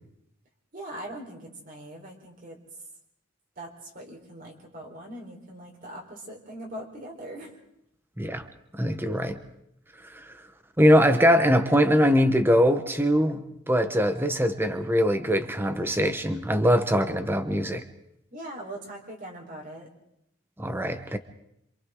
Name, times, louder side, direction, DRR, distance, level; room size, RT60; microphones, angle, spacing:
voice 1, 0.7-2.6 3.6-7.6 18.3-19.9, right 1 dB, 40° right, 1 dB, 4.3 m, -41 dB
voice 2, 8.7-9.4 10.0-10.3 10.8-17.8 20.6-21.2, equal, 10° right, 9 dB, 1.2 m, -22 dB
27.0 x 26.5 x 3.9 m, 0.77 s
head